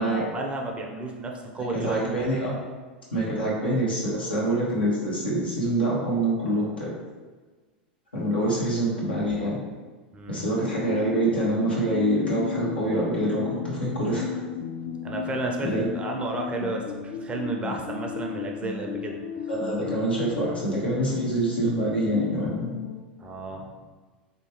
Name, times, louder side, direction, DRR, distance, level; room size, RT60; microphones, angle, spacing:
voice 1, 0.0-2.0 3.1-3.2 8.4-8.5 10.1-10.4 15.0-19.2 23.2-23.7, right 2 dB, 20° right, 1 dB, 0.5 m, -32 dB
voice 2, 1.6-2.5 3.1-6.9 8.1-9.7 10.3-14.3 15.6-15.9 19.5-22.7, right 1 dB, 90° left, -5 dB, 1.1 m, -26 dB
sound 1, 10.6-23.0, left 7 dB, 45° left, 0.4 m, -34 dB
3.4 x 2.9 x 2.9 m, 1.4 s
hypercardioid pair, 95°, 5 cm